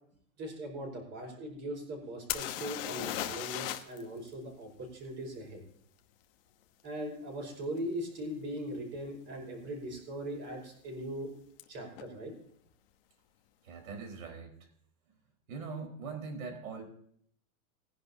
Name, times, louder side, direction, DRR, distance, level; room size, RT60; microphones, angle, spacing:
voice 1, 0.4-5.6 6.8-11.3 11.7-12.3, right 1 dB, 25° right, 0 dB, 5.1 m, -40 dB
sound 1, 2.3-4.0 4.3-4.4 7.8-7.9 8.5-8.7 9.0-9.6 11.6-11.7 12.0-12.1, left 13 dB, 40° left, 1.1 m, -37 dB
voice 2, 13.6-14.5 15.5-16.8, right 4 dB, 70° right, 4 dB, 4.7 m, -41 dB
20.0 x 10.5 x 2.8 m, 0.66 s
supercardioid pair, 165°, 43 cm